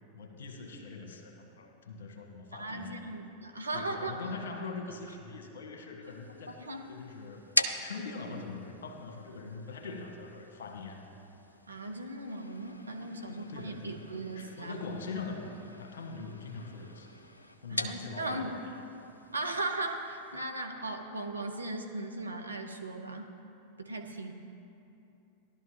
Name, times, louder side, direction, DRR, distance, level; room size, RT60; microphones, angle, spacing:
voice 1, 0.1-3.0 3.7-6.6 6.9-7.5 7.8-11.0 13.0-14.0 14.3-15.5 15.8-17.1 17.6-18.7, left 4 dB, 60° left, 3 dB, 1.4 m, -42 dB
voice 2, 2.5-4.2 6.7-6.9 11.7-14.8 17.7-18.5 19.3-23.3 23.8-24.3, right 2 dB, 80° right, 4 dB, 0.8 m, -37 dB
sound 1, 6.0-20.4, left 1 dB, 85° left, 0.5 m, -41 dB
16.5 x 11.5 x 2.9 m, 2.8 s
figure-of-eight pair, 90°, 0 cm